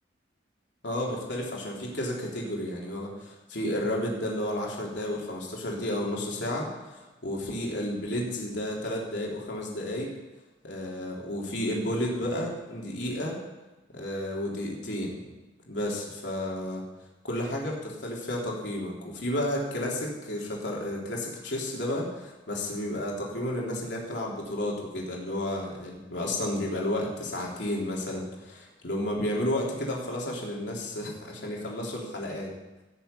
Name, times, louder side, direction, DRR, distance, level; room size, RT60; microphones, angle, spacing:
voice 1, 0.8-10.1 10.6-13.4 13.9-15.2 15.7-16.8 17.2-32.5, left 1 dB, 70° left, -2 dB, 3.5 m, -32 dB
17.0 x 6.9 x 8.5 m, 1.1 s
head